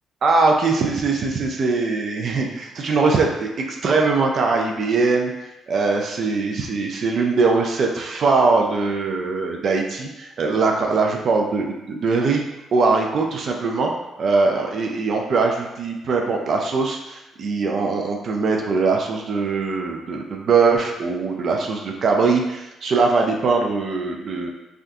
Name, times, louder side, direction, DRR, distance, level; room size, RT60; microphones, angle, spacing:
voice 1, 0.2-5.3 5.7-12.4 12.7-13.9 14.2-24.5, right 4 dB, 55° right, 1 dB, 0.4 m, -21 dB
3.5 x 2.3 x 2.6 m, 0.99 s
cardioid pair, 90°, 0 cm